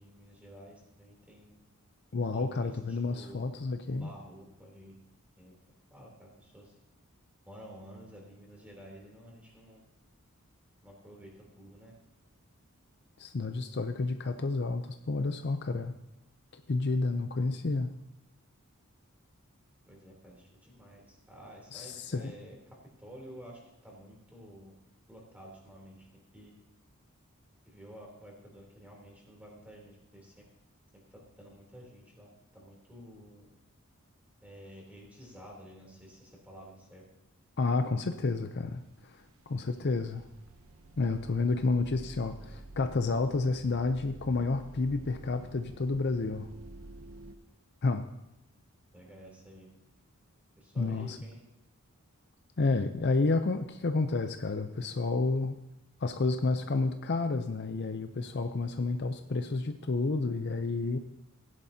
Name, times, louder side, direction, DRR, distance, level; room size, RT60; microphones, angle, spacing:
voice 1, 0.0-1.6 2.3-3.5 4.0-4.9 5.4-5.5 5.9-6.7 7.4-9.8 10.8-11.9 19.9-24.7 25.1-26.1 26.3-26.5 27.7-30.4 31.1-33.5 34.4-37.0 48.9-49.7 50.6-51.4, equal, 5° right, -2 dB, 3.1 m, -51 dB
voice 2, 2.1-4.1 13.2-15.9 16.5-17.9 21.7-22.3 37.6-39.2 39.5-40.2 41.0-46.5 47.8-48.0 50.8-51.2 52.6-55.6 56.0-61.0, left 3 dB, 50° left, 7 dB, 0.5 m, -30 dB
sound 1, 38.3-38.5 38.8-47.4, right 2 dB, 65° right, 0.9 m, -50 dB
16.0 x 11.0 x 2.8 m, 0.90 s
head